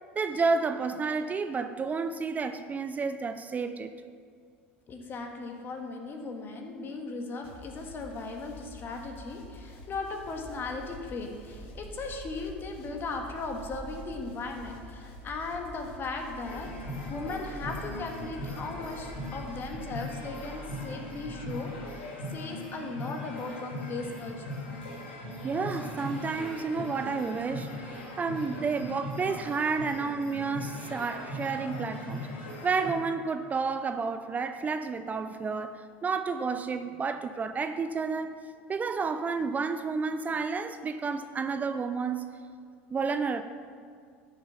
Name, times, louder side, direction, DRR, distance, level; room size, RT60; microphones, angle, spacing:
voice 1, 0.2-3.9 25.4-27.8 28.2-32.2 32.6-38.3 38.7-42.3 42.9-43.4, right 4 dB, 25° right, 0.5 m, -30 dB
voice 2, 4.9-24.6, left 3 dB, 40° left, 1.8 m, -37 dB
sound 1, 7.4-19.7, left 2 dB, 65° left, 1.8 m, -48 dB
sound 2, 10.1-22.0, right 5 dB, 60° right, 0.9 m, -48 dB
sound 3, 16.4-32.9, left 1 dB, 80° left, 2.2 m, -39 dB
12.5 x 6.5 x 5.9 m
hypercardioid pair, 80°, 6 cm